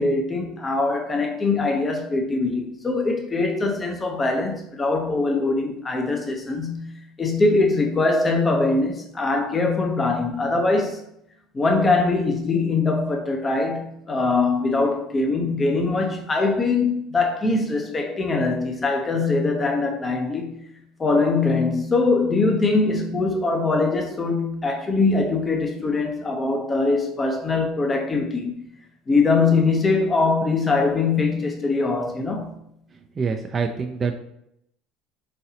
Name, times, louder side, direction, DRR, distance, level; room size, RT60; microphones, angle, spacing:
voice 1, 0.0-11.0 11.5-20.7 21.0-28.6 29.1-32.5, left 3 dB, 25° left, 0.7 m, -22 dB
voice 2, 32.9-34.1, right 5 dB, 30° right, 0.5 m, -26 dB
4.2 x 3.9 x 2.8 m
hypercardioid pair, 85°, 0 cm